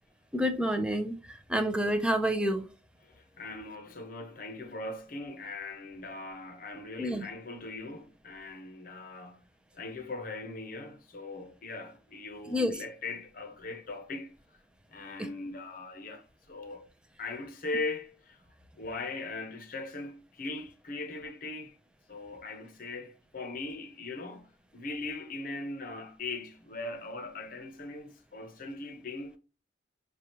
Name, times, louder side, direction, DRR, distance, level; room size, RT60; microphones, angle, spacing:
voice 1, 0.3-2.6 7.0-7.2 12.5-12.7, equal, 5° right, 0.5 m, -28 dB
voice 2, 3.0-9.4 9.7-14.3 14.9-16.9 17.2-18.4 18.8-21.8 22.1-29.4, left 3 dB, 45° left, 0.8 m, -40 dB
6.4 x 2.3 x 2.9 m
head